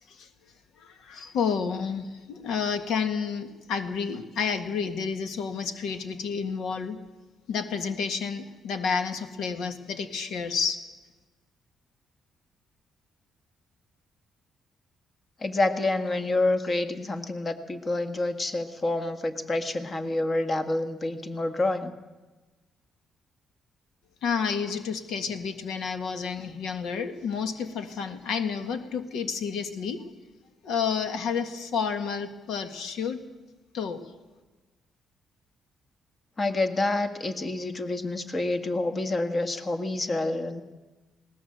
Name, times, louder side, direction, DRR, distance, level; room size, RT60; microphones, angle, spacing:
voice 1, 0.8-7.0 7.5-10.8 24.2-30.0 30.6-33.3 33.7-34.0, left 6 dB, 80° left, 8 dB, 1.8 m, -30 dB
voice 2, 15.4-21.9 36.4-40.6, left 2 dB, 35° left, 7 dB, 1.8 m, -28 dB
20.0 x 18.0 x 7.9 m, 1.2 s
cardioid pair, 90°, 0 cm